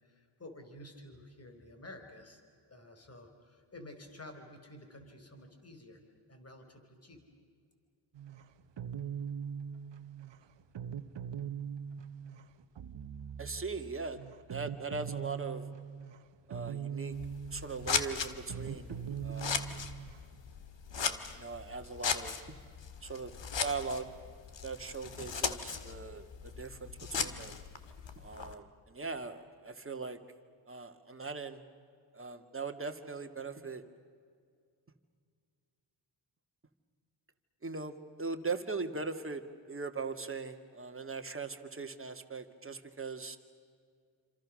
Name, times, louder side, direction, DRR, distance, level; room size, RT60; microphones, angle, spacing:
voice 1, 0.0-2.4 2.7-6.0 6.3-7.2, left 1 dB, 30° left, 5 dB, 4.7 m, -51 dB
sound 1, 8.1-20.3, right 7 dB, 60° right, 1.2 m, -42 dB
voice 2, 13.4-14.2 14.5-15.6 16.5-17.2 17.5-19.9 20.9-22.4 23.0-23.3 23.6-24.1 24.6-27.6 28.2-30.2 30.7-31.6 32.1-33.8 37.6-39.4 39.7-43.4, right 4 dB, 25° right, 7 dB, 2.2 m, -40 dB
Scissors, 17.1-28.5, left 6 dB, 60° left, 2.0 m, -38 dB
28.0 x 27.0 x 6.5 m, 2.1 s
cardioid pair, 75°, 49 cm